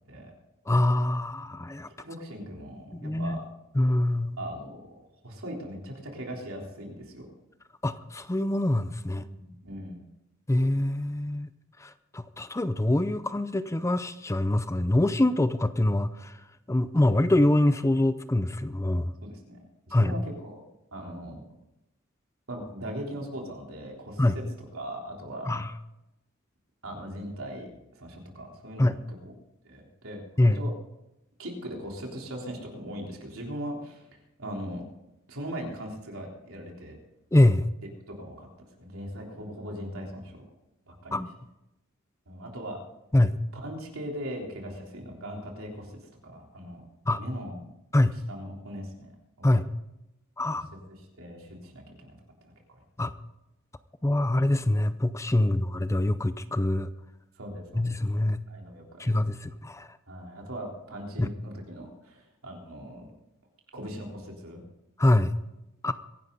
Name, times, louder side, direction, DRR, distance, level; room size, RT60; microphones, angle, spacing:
voice 1, 0.7-1.9 2.9-3.4 3.8-4.4 7.8-9.2 10.5-11.5 11.8-16.3 16.7-19.1 19.9-20.1 24.2-24.4 25.5-25.7 28.8-29.0 30.4-30.6 37.3-37.7 41.1-41.3 43.1-43.4 47.1-47.2 47.9-48.1 49.4-49.7 50.4-50.7 53.0-53.1 54.0-56.9 57.8-58.4 59.0-59.9 61.2-61.3 65.0-65.3 65.8-65.9, left 1 dB, 15° left, 13 dB, 0.5 m, -24 dB
voice 2, 2.0-3.5 4.4-7.3 9.1-10.1 19.2-19.6 19.9-20.6 20.9-21.5 22.5-24.4 24.7-25.5 26.8-27.7 28.0-29.3 29.6-30.7 31.4-34.1 34.4-34.8 35.3-36.9 38.1-38.5 38.8-40.4 40.9-41.2 42.3-42.8 43.5-46.9 47.1-47.7 48.3-49.1 49.4-49.5 50.5-50.6 51.0-52.2 52.4-52.8 55.4-55.7 57.4-58.0 58.5-59.1 60.1-63.1 63.7-64.6, equal, 75° right, 0 dB, 3.6 m, -39 dB
23.5 x 11.0 x 4.0 m, 0.91 s
head